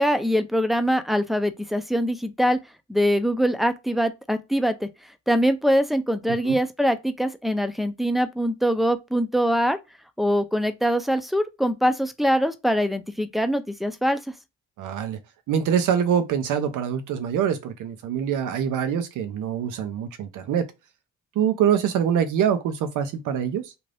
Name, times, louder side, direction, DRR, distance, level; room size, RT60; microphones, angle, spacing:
voice 1, 0.0-2.6 2.9-4.9 5.3-9.8 10.2-14.2, equal, ahead, 0.4 m, -23 dB
voice 2, 14.8-15.2 15.5-20.7 21.3-23.7, right 8 dB, 85° right, 0.7 m, -24 dB
2.6 x 2.5 x 3.3 m
cardioid pair, 90°, 30 cm